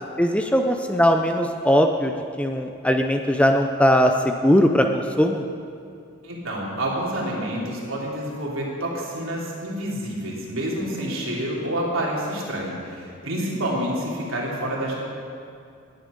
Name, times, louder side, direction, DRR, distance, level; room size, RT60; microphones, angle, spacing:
voice 1, 0.2-2.1 2.4-5.4, equal, 5° left, 4 dB, 0.5 m, -20 dB
voice 2, 6.2-15.0, right 1 dB, 70° right, -4 dB, 3.3 m, -28 dB
19.0 x 9.6 x 5.2 m, 2.4 s
head